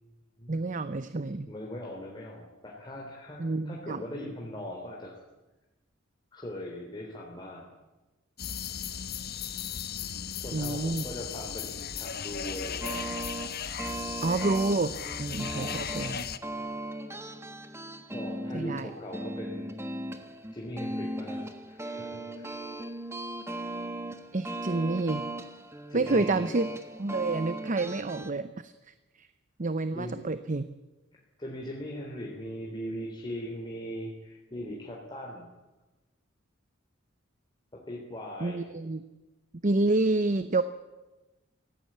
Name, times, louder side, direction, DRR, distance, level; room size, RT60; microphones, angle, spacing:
voice 1, 0.5-1.5 3.4-4.3 10.5-11.0 14.2-16.3 18.5-18.9 24.3-25.3 25.9-26.7 27.0-29.3 29.6-30.7 38.4-39.0 39.6-40.6, right 2 dB, 40° right, 12 dB, 0.7 m, -29 dB
voice 2, 1.5-5.2 6.3-7.7 10.4-13.1 15.5-15.8 18.1-19.7 20.5-22.5 25.9-26.6 29.9-30.2 31.1-35.5 37.7-38.7, equal, 20° left, -2 dB, 3.1 m, -40 dB
sound 1, 8.4-16.4, left 8 dB, 50° left, 1.1 m, -36 dB
sound 2, 12.8-28.3, right 1 dB, 15° right, 1.5 m, -38 dB
24.0 x 17.0 x 8.6 m, 1.1 s
head